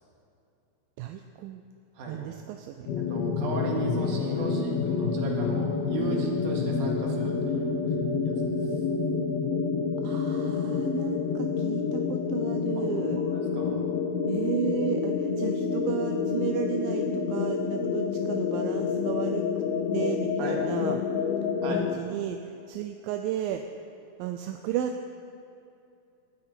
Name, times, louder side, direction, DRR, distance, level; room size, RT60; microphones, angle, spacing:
voice 1, 1.0-1.6 2.1-2.9 10.0-13.2 14.3-19.5 19.9-21.0 21.7-23.6 24.2-25.1, right 10 dB, 80° right, 6 dB, 2.2 m, -33 dB
voice 2, 1.9-2.3 3.1-7.7 8.2-8.6 13.3-13.8 20.4-20.6 21.6-21.9, right 3 dB, 60° right, 0 dB, 3.1 m, -36 dB
sound 1, 2.9-22.0, left 5 dB, 75° left, 2.9 m, -28 dB
19.0 x 12.5 x 4.4 m, 2.7 s
omnidirectional pair, 4.4 m